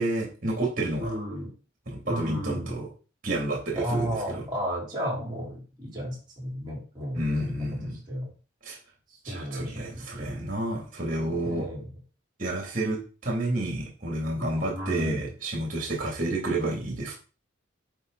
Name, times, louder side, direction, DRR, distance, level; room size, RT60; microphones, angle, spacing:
voice 1, 0.0-1.1 1.9-2.9 3.2-4.4 7.1-8.0 8.6-8.8 9.2-11.7 12.4-17.2, right 1 dB, 40° right, -1 dB, 2.9 m, -30 dB
voice 2, 1.0-1.5 2.0-2.7 3.7-7.5 8.1-8.3 9.3-10.0 11.4-11.8 14.4-15.2, equal, 20° right, -4 dB, 5.0 m, -33 dB
10.5 x 4.4 x 4.1 m, 0.35 s
head